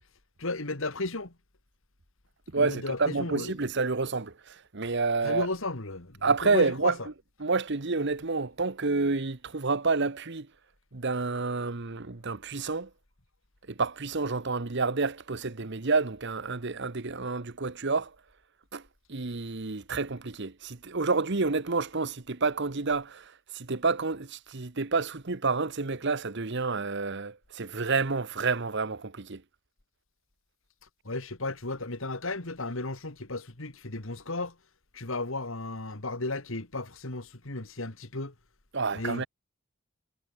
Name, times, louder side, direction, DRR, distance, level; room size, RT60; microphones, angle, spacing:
voice 1, 0.4-1.3 2.6-3.5 5.2-6.9 31.0-34.5 34.9-38.3 38.9-39.3, left 2 dB, 65° left, 2.4 m, -34 dB
voice 2, 2.5-5.5 6.2-7.1 7.4-10.5 10.9-12.9 13.7-18.1 18.7-18.8 19.1-29.4 38.7-39.3, right 4 dB, 55° right, 1.1 m, -29 dB
head